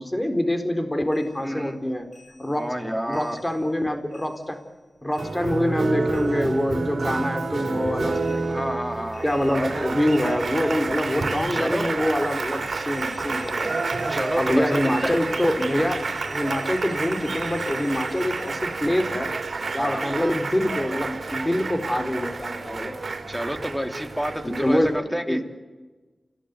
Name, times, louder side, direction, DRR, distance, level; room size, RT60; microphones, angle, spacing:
voice 1, 0.0-2.1 2.4-2.7 3.1-4.6 5.0-8.7 9.2-13.8 14.4-19.3 19.7-23.0 24.4-24.9 25.3-25.4, left 1 dB, 20° left, 6 dB, 4.1 m, -25 dB
sound 1, 1.1-3.8 4.1-6.8 7.1-18.9, left 3 dB, 60° left, 5.6 m, -50 dB
voice 2, 1.4-1.8 2.5-3.4 8.5-10.0 11.5-11.9 14.1-15.2 19.8-20.0 23.3-25.5, equal, ahead, 6 dB, 3.1 m, -29 dB
Applause, 5.2-24.8, right 3 dB, 70° right, 3.1 m, -29 dB
sound 2, 9.3-25.0, right 2 dB, 40° right, 6.4 m, -44 dB
29.0 x 17.5 x 9.6 m, 1.3 s
cardioid pair, 45°, 0 cm